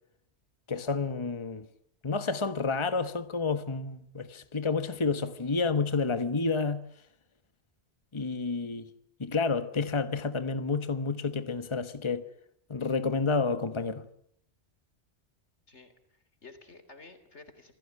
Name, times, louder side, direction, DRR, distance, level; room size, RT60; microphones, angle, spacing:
voice 1, 0.7-1.7 2.0-6.9 8.1-8.9 9.2-12.2 12.7-14.0, left 4 dB, 25° left, 1.2 m, -30 dB
voice 2, 15.7-17.7, left 3 dB, 85° left, 3.8 m, -52 dB
27.0 x 16.5 x 9.6 m
omnidirectional pair, 1.1 m